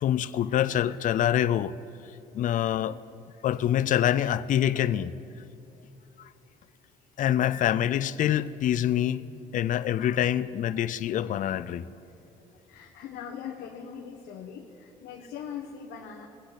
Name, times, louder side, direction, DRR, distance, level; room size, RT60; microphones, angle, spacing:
voice 1, 0.0-1.7 2.3-3.0 3.4-5.1 7.2-9.2 9.5-11.8, left 11 dB, 50° left, 0.4 m, -25 dB
voice 2, 12.7-16.3, left 7 dB, 80° left, 1.1 m, -40 dB
23.0 x 8.1 x 4.0 m
cardioid pair, 110°, 17 cm